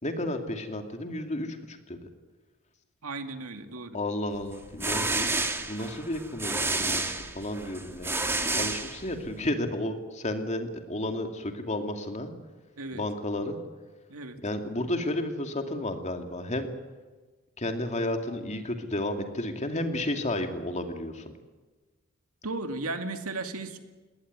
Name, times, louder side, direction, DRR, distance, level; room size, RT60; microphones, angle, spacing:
voice 1, 0.0-2.0 3.9-5.3 5.6-8.2 8.5-12.3 12.9-13.6 14.4-16.7 17.6-21.2, left 1 dB, 35° left, 5 dB, 2.5 m, -32 dB
voice 2, 3.0-4.0 12.8-13.0 14.1-14.4 22.4-23.8, right 3 dB, 85° right, 7 dB, 2.3 m, -35 dB
sound 1, 4.5-9.4, right 2 dB, 10° right, 1.7 m, -30 dB
20.5 x 19.0 x 9.8 m, 1.3 s
head